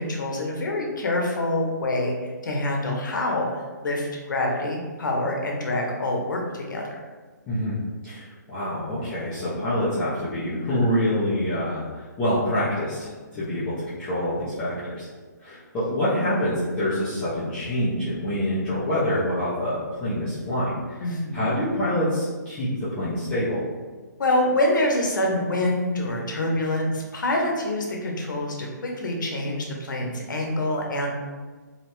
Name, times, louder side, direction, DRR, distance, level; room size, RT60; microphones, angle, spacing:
voice 1, 0.0-6.8 13.3-13.7 21.0-21.4 24.2-31.1, left 1 dB, 75° left, 0 dB, 0.7 m, -26 dB
voice 2, 7.5-7.8 8.0-15.1 15.4-23.6, left 1 dB, 10° left, -13 dB, 0.4 m, -26 dB
2.8 x 2.0 x 2.9 m, 1.4 s
hypercardioid pair, 165°, 10 cm